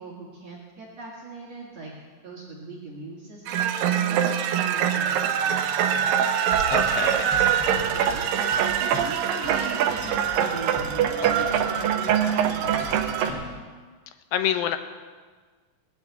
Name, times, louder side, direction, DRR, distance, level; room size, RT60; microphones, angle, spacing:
voice 1, 0.0-1.9 2.2-6.1 7.9-13.7, right 3 dB, 50° right, -4 dB, 2.7 m, -40 dB
sound 1, 3.5-13.3, right 9 dB, 80° right, 2.5 m, -23 dB
Typing, 6.5-13.5, equal, 35° left, 6.8 m, -37 dB
voice 2, 6.7-7.3 14.3-14.8, left 10 dB, 90° left, 8 dB, 2.7 m, -26 dB
19.5 x 6.8 x 8.1 m, 1.5 s
omnidirectional pair, 4.0 m